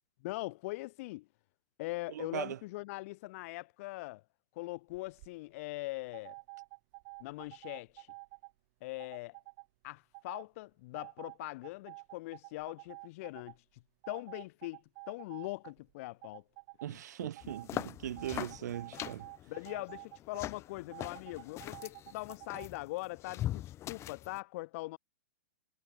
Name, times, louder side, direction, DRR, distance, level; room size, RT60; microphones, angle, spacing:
voice 1, 0.2-1.3 1.8-4.2 4.5-6.4 7.2-8.1 8.8-9.4 9.8-13.5 14.1-14.8 15.1-16.4 17.2-17.3 17.8-17.9 19.5-25.0, left 21 dB, 50° left, 3.1 m, -41 dB
voice 2, 2.1-2.6 16.8-19.3, right 11 dB, 70° right, 3.8 m, -39 dB
sound 1, 4.9-5.3 6.1-8.5 9.0-9.7 10.1-10.5 10.9-13.6 14.0-15.9 16.2-16.9 17.4-17.7 18.2-20.4 20.9-22.7, right 26 dB, 50° right, 3.7 m, -50 dB
sound 2, 17.4-24.4, left 13 dB, 30° left, 1.5 m, -42 dB
hypercardioid pair, 130°, 10 cm